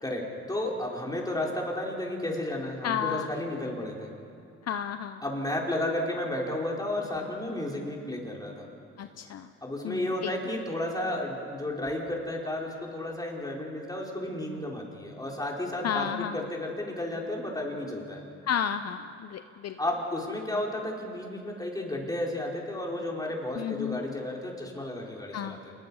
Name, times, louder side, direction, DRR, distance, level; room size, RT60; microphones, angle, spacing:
voice 1, 0.5-4.1 5.2-8.7 9.6-18.2 19.8-25.7, left 1 dB, 10° left, -2 dB, 4.7 m, -32 dB
voice 2, 2.8-3.3 4.6-5.2 9.0-9.5 9.8-10.3 15.8-16.5 18.5-19.8 23.6-24.0 25.3-25.6, left 8 dB, 55° left, 9 dB, 0.8 m, -32 dB
28.0 x 20.0 x 5.6 m, 2.5 s
cardioid pair, 90°, 30 cm